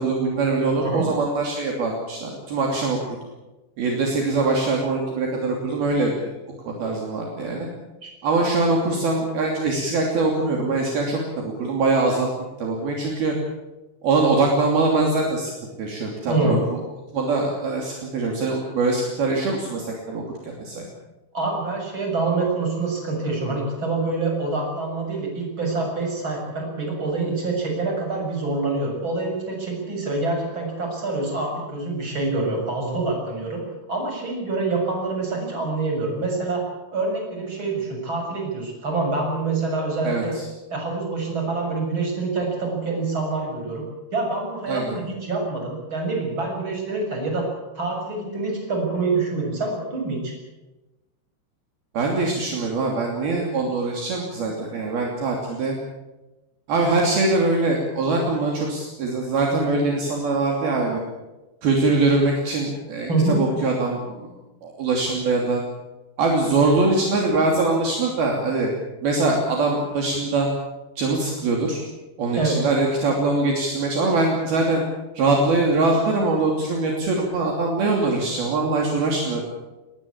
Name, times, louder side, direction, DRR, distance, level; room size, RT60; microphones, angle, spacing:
voice 1, 0.0-3.2 3.8-6.1 6.7-7.7 8.2-12.3 12.6-13.3 14.0-15.5 15.8-16.8 17.1-20.9 40.0-40.5 44.7-44.9 51.9-55.8 56.7-61.0 61.6-64.3 64.6-65.6 66.2-68.7 69.0-70.5 71.0-71.8 72.2-74.8 75.1-79.4, right 3 dB, 60° right, 0 dB, 4.7 m, -22 dB
voice 2, 0.8-1.1 8.0-8.1 16.3-16.6 21.3-33.6 33.9-36.6 36.9-40.3 40.7-43.8 44.1-47.4 47.7-50.3 63.1-63.4 72.3-72.6, right 3 dB, 25° right, 1 dB, 7.7 m, -26 dB
22.0 x 19.5 x 8.6 m, 1.1 s
omnidirectional pair, 5.1 m